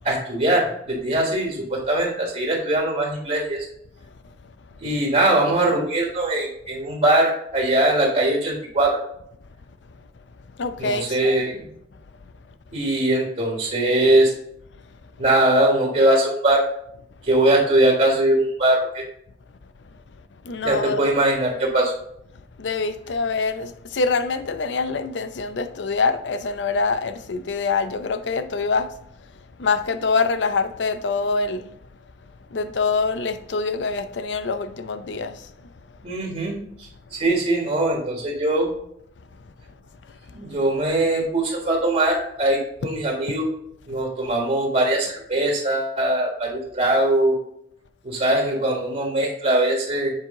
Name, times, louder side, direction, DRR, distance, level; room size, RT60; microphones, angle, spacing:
voice 1, 0.0-3.6 4.8-9.0 10.8-11.7 12.7-14.3 15.2-16.6 17.2-19.0 20.6-21.9 36.0-36.6 37.1-38.7 40.3-43.5 43.9-47.3 48.0-50.1, right 1 dB, 45° right, 1.5 m, -21 dB
voice 2, 10.6-11.4 20.4-21.1 22.6-29.0 29.6-31.7 32.5-35.5, left 4 dB, 85° left, 0.6 m, -25 dB
7.5 x 4.7 x 3.7 m
head